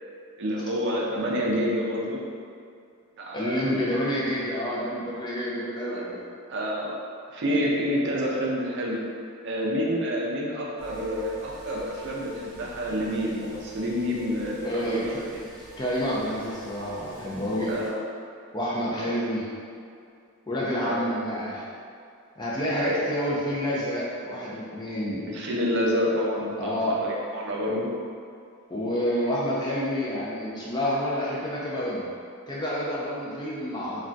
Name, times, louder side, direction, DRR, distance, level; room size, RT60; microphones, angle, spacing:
voice 1, 0.4-2.2 3.2-3.9 5.9-6.0 6.5-7.0 7.3-9.0 9.4-15.4 17.7-18.0 18.9-19.0 20.8-21.0 22.7-23.0 25.2-27.9, equal, 50° right, -3 dB, 0.4 m, -28 dB
voice 2, 3.3-6.1 14.6-15.2 15.8-17.7 18.5-19.4 20.5-21.6 22.4-25.2 26.6-27.0 28.7-32.1 32.5-34.1, equal, 20° left, -6 dB, 0.4 m, -28 dB
sound 1, 10.8-17.9, equal, 20° right, 0.9 m, -47 dB
2.3 x 2.2 x 3.8 m, 2.4 s
head